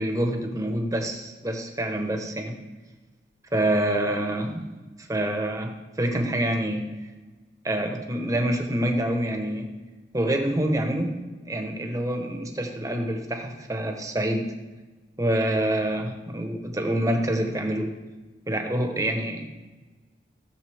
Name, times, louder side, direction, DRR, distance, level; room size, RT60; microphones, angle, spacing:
voice 1, 0.0-2.6 3.5-4.6 5.1-6.9 7.6-9.7 10.1-11.1 11.4-14.5 15.2-17.9 18.5-19.5, right 1 dB, 20° right, 4 dB, 1.1 m, -26 dB
14.5 x 7.2 x 3.5 m, 1.2 s
head